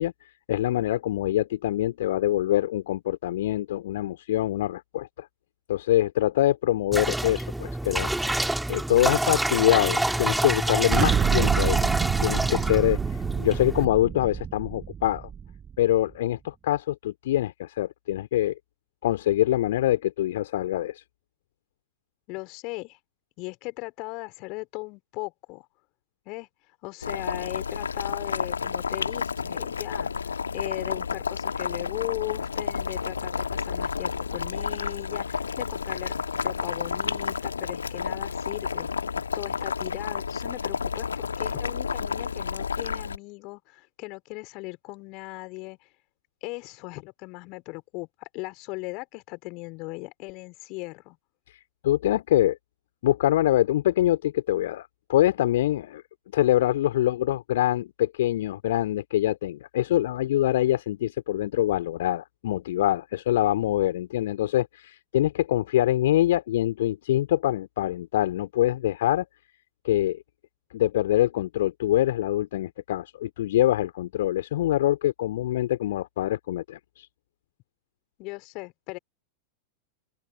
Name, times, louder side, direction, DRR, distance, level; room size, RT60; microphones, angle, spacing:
voice 1, 0.0-5.3 5.7-11.9 12.2-15.3 15.8-18.5 19.0-21.0 51.5-52.6 53.0-56.0 56.3-69.2 69.8-70.2 70.7-77.1, left 13 dB, 55° left, 2.5 m, -24 dB
sound 1, 6.9-13.9, right 1 dB, 5° right, 2.2 m, -27 dB
Explosion, 10.9-15.7, right 8 dB, 20° right, 4.7 m, -27 dB
voice 2, 22.3-23.0 23.4-25.7 26.3-26.5 26.8-36.2 36.4-38.9 39.3-45.8 46.4-51.2 78.2-79.0, left 26 dB, 40° left, 4.3 m, -38 dB
Boiling, 27.0-43.2, left 6 dB, 70° left, 1.8 m, -31 dB
figure-of-eight pair, 90°, 0 cm